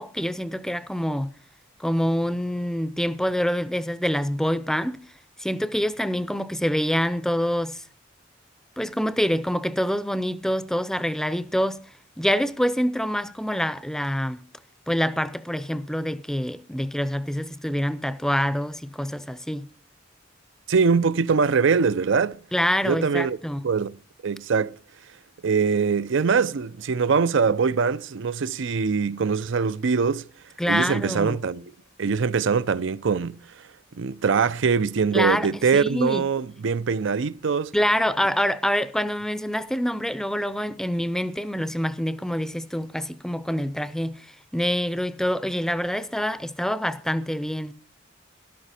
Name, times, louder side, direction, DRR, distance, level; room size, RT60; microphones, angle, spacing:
voice 1, 0.0-1.3 1.8-5.0 5.4-7.8 8.8-11.8 12.2-14.4 14.9-19.7 22.5-23.6 30.6-31.4 35.1-36.2 37.7-47.7, equal, 5° left, 0.6 m, -26 dB
voice 2, 20.7-22.4 22.8-23.4 23.6-23.9 24.2-24.8 25.4-30.2 30.7-31.7 32.0-33.4 33.9-37.7, right 5 dB, 65° right, 0.5 m, -23 dB
13.0 x 12.5 x 4.3 m
head